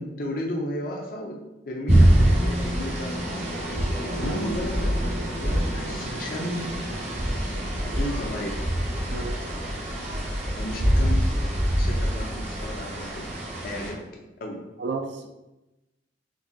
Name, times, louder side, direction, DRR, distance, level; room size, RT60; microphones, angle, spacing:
voice 1, 0.0-3.4 4.2-5.0 5.4-6.7 7.8-8.6 10.6-13.3 13.6-14.1 14.4-14.6, left 1 dB, 55° left, 0 dB, 0.5 m, -34 dB
sound 1, 1.9-13.9, right 1 dB, 40° right, 0.7 m, -25 dB
sound 2, 2.3-12.0, right 1 dB, 90° left, 1.3 m, -39 dB
voice 2, 14.8-15.3, right 4 dB, 70° right, 5 dB, 0.4 m, -32 dB
3.9 x 2.6 x 2.5 m, 0.97 s
head